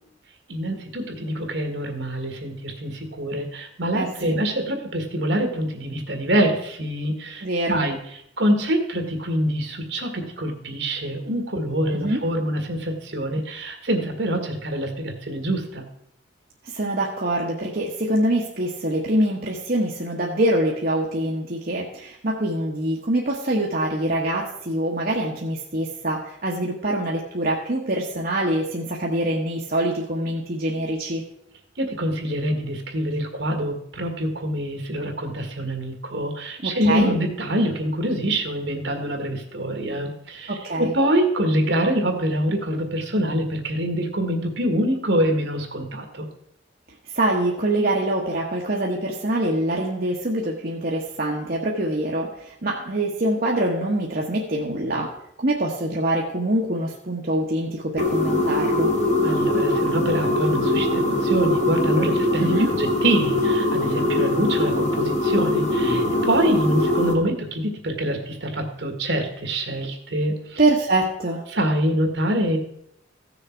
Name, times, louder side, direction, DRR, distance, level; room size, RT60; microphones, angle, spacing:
voice 1, 0.5-8.0 8.4-15.8 31.8-46.3 59.2-70.6 71.5-72.6, right 1 dB, 65° right, 4 dB, 1.9 m, -25 dB
voice 2, 3.9-4.4 7.4-7.9 11.9-12.2 16.6-31.2 36.6-37.1 40.5-40.9 47.1-58.9 62.4-62.7 70.6-71.4, right 1 dB, 50° right, -2 dB, 1.3 m, -24 dB
sound 1, 58.0-67.1, left 1 dB, 35° left, 1.5 m, -22 dB
15.5 x 6.5 x 4.6 m, 0.75 s
head